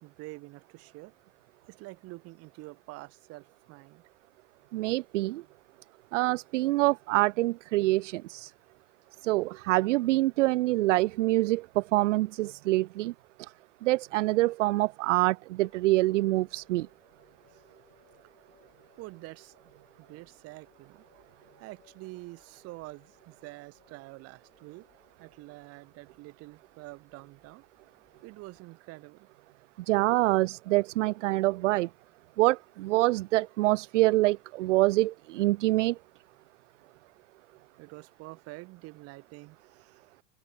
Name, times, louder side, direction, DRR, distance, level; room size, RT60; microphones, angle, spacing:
voice 1, 0.0-1.1 1.7-4.0 17.5-17.6 19.0-19.5 20.0-21.0 21.6-24.8 25.2-27.6 28.2-29.3 37.8-40.0, right 22 dB, 40° right, 2.8 m, -47 dB
voice 2, 4.7-5.4 6.1-8.5 9.2-13.1 13.8-16.9 29.9-31.9 32.4-36.0, right 19 dB, 65° right, 0.6 m, -25 dB
sound 1, 15.6-28.6, left 8 dB, 20° left, 6.3 m, -66 dB
open air
supercardioid pair, 145°, 39 cm